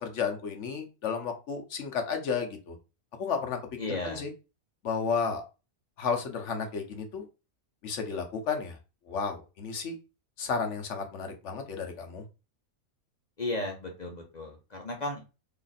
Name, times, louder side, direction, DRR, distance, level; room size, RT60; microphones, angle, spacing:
voice 1, 0.0-2.8 3.2-3.6 3.9-4.3 4.8-5.4 6.0-7.3 7.8-8.8 9.1-10.0 10.4-12.2, left 5 dB, 60° left, 5 dB, 1.0 m, -32 dB
voice 2, 3.8-4.2 13.4-15.2, left 2 dB, 35° left, 1 dB, 0.8 m, -34 dB
3.2 x 2.4 x 4.0 m, 0.29 s
omnidirectional pair, 1.5 m